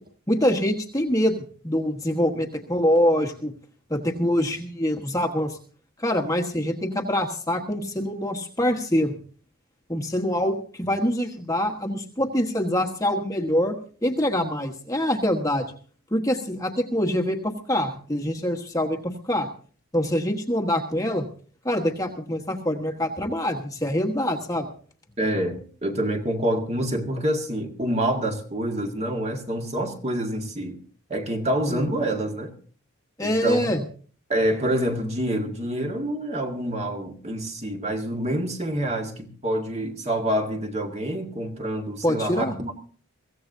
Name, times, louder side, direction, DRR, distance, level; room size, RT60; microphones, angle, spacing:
voice 1, 0.3-1.3 1.6-3.5 3.9-5.6 6.0-9.2 9.9-15.7 16.1-19.5 19.9-21.3 21.6-24.7 31.7-31.8 33.2-33.8 42.0-42.5, equal, 15° left, 1.3 m, -25 dB
voice 2, 25.2-30.8 31.1-32.5 33.2-33.7 34.3-42.8, right 1 dB, 30° right, 1.8 m, -27 dB
23.5 x 16.0 x 2.7 m
head